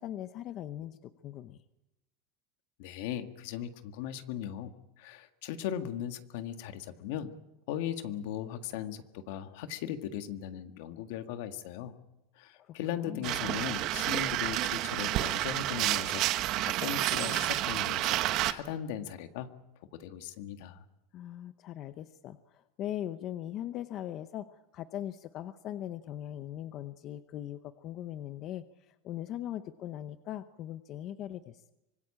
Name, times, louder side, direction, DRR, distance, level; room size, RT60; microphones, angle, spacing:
voice 1, 0.0-1.6 12.5-13.3 21.1-31.7, left 12 dB, 40° left, 11 dB, 0.8 m, -40 dB
voice 2, 2.8-4.7 5.0-7.3 7.7-11.9 12.4-16.2 16.6-19.5 19.9-20.8, left 10 dB, 70° left, 8 dB, 1.7 m, -38 dB
sound 1, 13.2-18.5, right 15 dB, 45° right, 1.1 m, -30 dB
25.0 x 20.0 x 8.8 m, 0.98 s
supercardioid pair, 155°, 0 cm